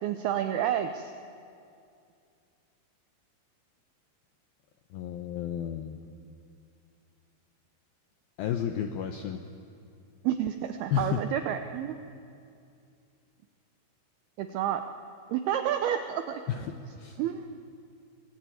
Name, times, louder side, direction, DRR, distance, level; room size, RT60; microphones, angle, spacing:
voice 1, 0.0-1.1 10.2-12.1 14.4-14.8 15.3-16.4 17.2-17.6, right 10 dB, 90° right, 8 dB, 2.2 m, -30 dB
voice 2, 4.9-6.0 8.4-9.4 10.9-11.2 16.5-17.2, left 9 dB, 90° left, 6 dB, 2.0 m, -32 dB
24.0 x 19.5 x 9.3 m, 2.4 s
omnidirectional pair, 5.6 m